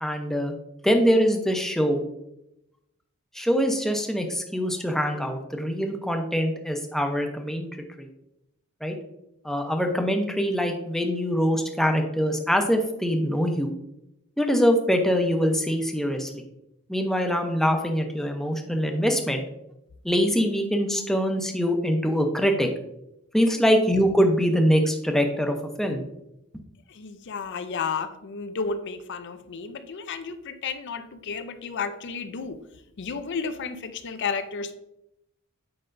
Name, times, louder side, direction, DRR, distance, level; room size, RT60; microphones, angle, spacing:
voice 1, 0.0-0.5 0.8-2.0 3.3-7.7 8.0-8.1 8.8-9.0 9.4-13.7 14.4-16.4 16.9-19.4 20.0-22.7 23.3-26.0, equal, ahead, 4 dB, 0.6 m, -23 dB
voice 2, 27.0-32.6 33.0-34.8, left 5 dB, 55° left, 10 dB, 0.5 m, -32 dB
7.7 x 5.0 x 2.5 m, 0.84 s
head